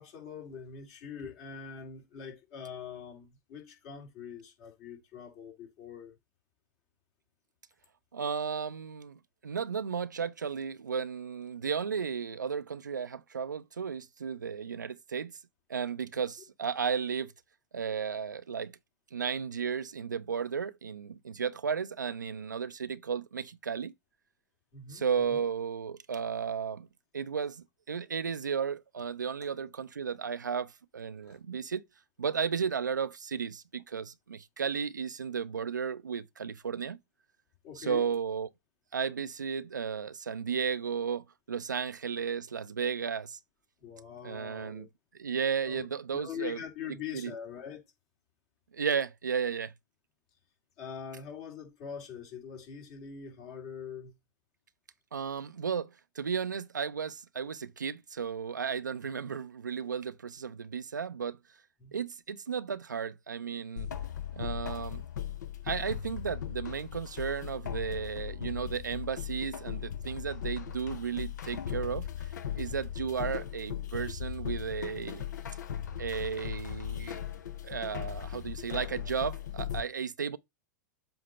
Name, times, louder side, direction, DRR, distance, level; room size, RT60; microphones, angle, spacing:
voice 1, 0.0-6.1 24.7-25.4 31.2-31.4 37.6-38.1 43.8-44.9 45.7-45.9 46.1-47.8 50.8-54.1 61.8-61.9, left 7 dB, 50° left, 3.0 m, -43 dB
voice 2, 8.1-15.3 15.7-17.3 17.7-18.8 19.1-23.9 24.9-26.9 27.1-31.8 32.2-37.0 37.8-38.5 38.9-43.4 44.2-44.9 45.2-46.6 47.1-47.3 48.7-49.7 55.1-61.4 61.9-63.9 64.3-65.0 65.6-72.1 72.5-75.2 76.0-77.2 77.6-80.4, right 6 dB, 90° right, 0.5 m, -34 dB
sound 1, 63.8-79.8, left 9 dB, 75° left, 0.8 m, -38 dB
7.7 x 2.9 x 5.5 m
hypercardioid pair, 100°, 10 cm